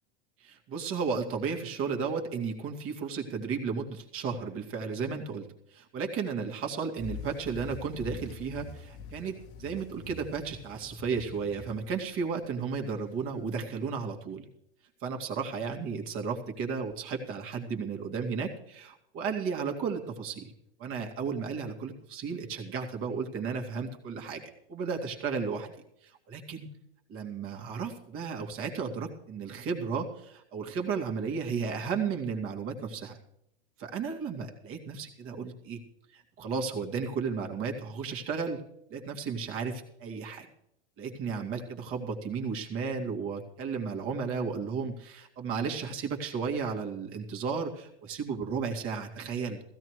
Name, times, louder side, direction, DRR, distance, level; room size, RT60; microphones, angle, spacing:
voice 1, 0.4-14.5 15.0-20.5 20.8-24.4 24.7-26.7 27.1-33.2 33.8-35.8 36.1-38.6 38.9-40.5 41.0-49.6, right 5 dB, 40° right, 2 dB, 2.5 m, -34 dB
sound 1, 7.0-13.7, left 4 dB, 45° left, 1.4 m, -45 dB
16.0 x 15.5 x 3.2 m, 0.77 s
hypercardioid pair, 95°, 32 cm